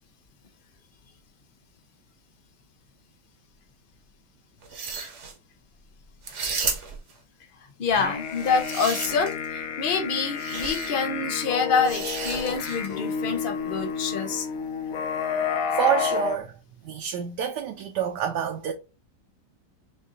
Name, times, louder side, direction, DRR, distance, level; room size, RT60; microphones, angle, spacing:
sound 1, 4.6-5.3 6.2-7.1 8.3-9.4 10.4-10.9 11.8-12.9, right 5 dB, 50° right, 1.0 m, -33 dB
voice 1, 7.8-14.5, left 5 dB, 90° left, 0.4 m, -26 dB
sound 2, 7.9-16.4, left 6 dB, 65° left, 0.9 m, -31 dB
voice 2, 15.7-16.5 16.8-18.7, right 9 dB, 75° right, 1.2 m, -27 dB
6.4 x 2.5 x 2.8 m
omnidirectional pair, 1.9 m